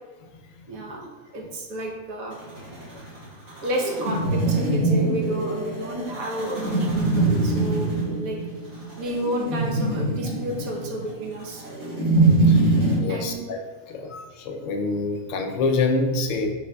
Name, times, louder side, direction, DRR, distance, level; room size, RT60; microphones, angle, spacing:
voice 1, 0.7-1.1 1.3-2.4 3.6-8.4 9.0-11.6 13.1-13.5, right 1 dB, 85° right, -1 dB, 1.3 m, -31 dB
sound 1, 2.3-13.0, right 2 dB, 55° right, 1.8 m, -23 dB
voice 2, 12.5-13.6 13.9-16.5, left 3 dB, 70° left, 3 dB, 0.9 m, -26 dB
5.7 x 3.4 x 2.2 m, 1.3 s
omnidirectional pair, 1.4 m